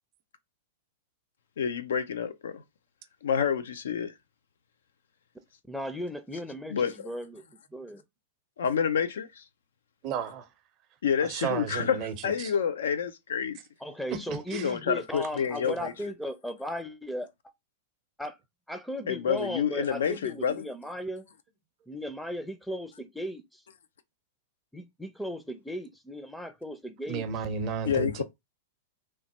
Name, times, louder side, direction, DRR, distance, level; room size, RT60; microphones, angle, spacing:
voice 1, 1.6-2.6 3.2-4.1 6.7-6.9 8.6-9.4 11.0-13.6 14.5-15.9 19.1-20.6 27.8-28.2, left 7 dB, 75° left, 0.4 m, -28 dB
voice 2, 5.7-7.4 7.7-8.0 13.8-17.3 18.2-18.4 18.7-21.3 21.9-23.6 24.7-27.2, equal, ahead, 0.5 m, -36 dB
voice 3, 10.0-10.5 11.2-12.5 14.3-14.7 27.1-28.2, right 6 dB, 40° right, 0.6 m, -33 dB
3.0 x 2.0 x 2.9 m
hypercardioid pair, 110°, 0 cm